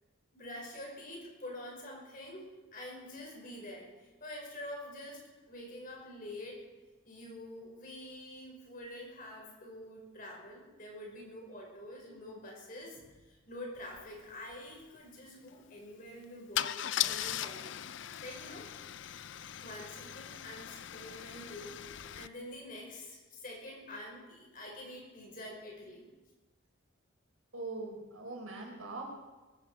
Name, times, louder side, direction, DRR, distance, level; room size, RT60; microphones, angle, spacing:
voice 1, 0.3-3.9 4.2-6.6 7.0-17.7 18.2-18.7 19.6-21.8 22.1-26.1, left 1 dB, 40° left, -1 dB, 5.4 m, -46 dB
Car / Engine starting / Idling, 13.9-14.0 14.3-14.6 16.6-22.3, left 11 dB, 65° left, 0.5 m, -38 dB
voice 2, 27.5-29.0, right 3 dB, 85° right, -1 dB, 5.2 m, -41 dB
21.5 x 14.0 x 4.8 m, 1.2 s
head